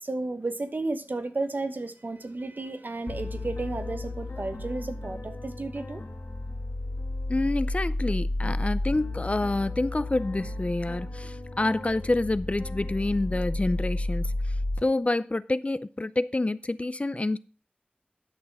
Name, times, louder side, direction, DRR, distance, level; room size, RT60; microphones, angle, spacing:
voice 1, 0.0-6.0, right 2 dB, 60° right, 1.0 m, -33 dB
sound 1, 3.1-14.8, left 2 dB, 85° left, 1.8 m, -32 dB
voice 2, 7.3-14.3 14.8-17.4, left 2 dB, 35° left, 0.5 m, -27 dB
10.5 x 6.3 x 5.4 m
wide cardioid pair, 60°, 4 cm